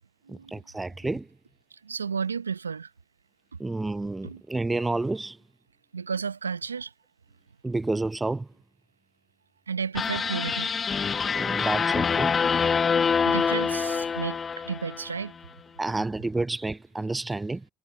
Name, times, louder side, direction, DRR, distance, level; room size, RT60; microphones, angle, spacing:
voice 1, 0.3-1.3 3.6-5.4 7.6-8.5 11.4-12.4 15.8-17.6, right 2 dB, 15° right, 0.8 m, -30 dB
voice 2, 1.8-2.9 3.5-3.6 4.2-4.4 5.9-6.9 9.7-10.7 13.2-15.3, right 6 dB, 85° right, 1.0 m, -32 dB
sound 1, 9.9-15.2, left 6 dB, 30° left, 1.7 m, -26 dB
figure-of-eight pair, 60°, 0 cm